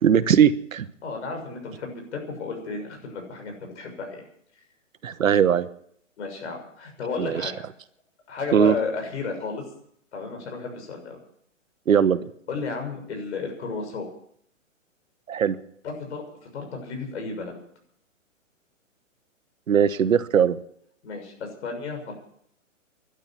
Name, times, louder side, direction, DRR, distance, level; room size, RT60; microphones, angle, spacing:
voice 1, 0.0-0.9 5.0-5.7 7.2-7.5 8.5-8.8 11.9-12.3 15.3-15.6 19.7-20.6, right 8 dB, 90° right, 14 dB, 1.2 m, -20 dB
voice 2, 1.0-4.2 6.2-7.7 8.3-9.6 10.1-11.2 12.5-14.1 15.8-16.2 16.5-17.5 21.0-22.1, left 4 dB, 60° left, 3 dB, 6.6 m, -33 dB
12.0 x 11.5 x 9.5 m, 0.67 s
hypercardioid pair, 150°, 39 cm